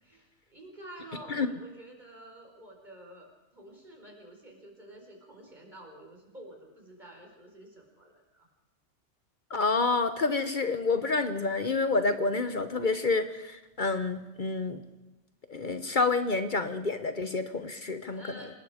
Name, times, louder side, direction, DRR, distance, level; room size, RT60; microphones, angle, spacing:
voice 1, 0.0-8.5 18.1-18.6, right 1 dB, 40° right, 0 dB, 4.9 m, -49 dB
voice 2, 9.5-14.8 15.5-18.5, left 3 dB, 45° left, 9 dB, 1.1 m, -28 dB
26.5 x 20.0 x 5.0 m, 1.0 s
omnidirectional pair, 1.2 m